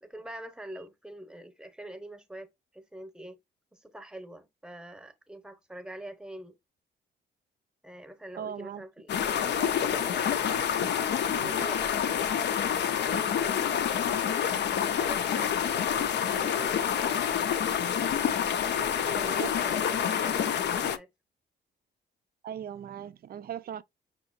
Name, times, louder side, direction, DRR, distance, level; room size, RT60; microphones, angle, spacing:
voice 1, 0.0-3.4 3.7-6.6 7.8-10.4 11.4-12.2 13.0-17.4 18.6-21.1, right 1 dB, 5° right, 0.9 m, -44 dB
voice 2, 8.4-8.8 19.2-19.5 22.4-23.8, right 9 dB, 50° right, 0.4 m, -38 dB
sound 1, 9.1-21.0, left 8 dB, 60° left, 0.6 m, -28 dB
6.0 x 2.9 x 2.4 m
cardioid pair, 90°, 20 cm